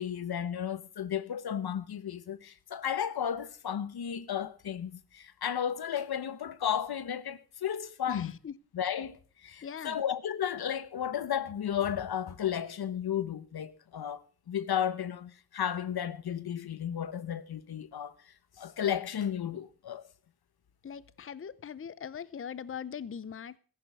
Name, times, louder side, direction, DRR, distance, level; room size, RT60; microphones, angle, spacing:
voice 1, 0.0-8.3 8.7-18.1 18.6-20.0, left 9 dB, 85° left, 1.0 m, -33 dB
voice 2, 8.1-8.6 9.6-10.0 20.8-23.6, left 7 dB, 35° left, 0.6 m, -41 dB
15.0 x 11.0 x 6.4 m
wide cardioid pair, 105°, 37 cm